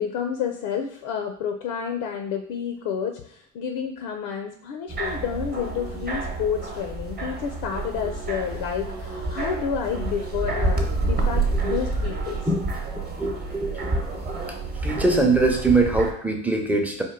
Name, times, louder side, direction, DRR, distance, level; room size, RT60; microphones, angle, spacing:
voice 1, 0.0-12.4, left 7 dB, 60° left, 5 dB, 0.7 m, -30 dB
sound 1, 4.9-16.1, right 3 dB, 20° right, 1.0 m, -29 dB
voice 2, 13.2-14.0 14.5-14.6 14.8-17.0, right 3 dB, 5° right, 1 dB, 0.6 m, -23 dB
4.4 x 2.6 x 3.7 m, 0.64 s
supercardioid pair, 95°, 43 cm